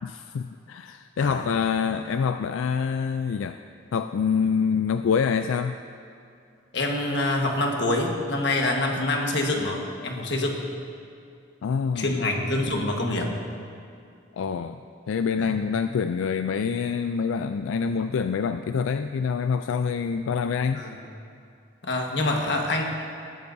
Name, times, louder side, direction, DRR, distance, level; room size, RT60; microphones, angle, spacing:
voice 1, 0.0-3.7 3.9-5.8 11.6-12.1 14.3-14.8 15.1-20.8, left 6 dB, 90° left, 9 dB, 0.3 m, -26 dB
voice 2, 1.2-1.5 6.7-10.6 11.9-13.3 15.4-15.6 20.7-21.0 21.8-22.8, left 2 dB, 60° left, 1 dB, 1.4 m, -26 dB
19.0 x 13.0 x 2.7 m, 2.4 s
head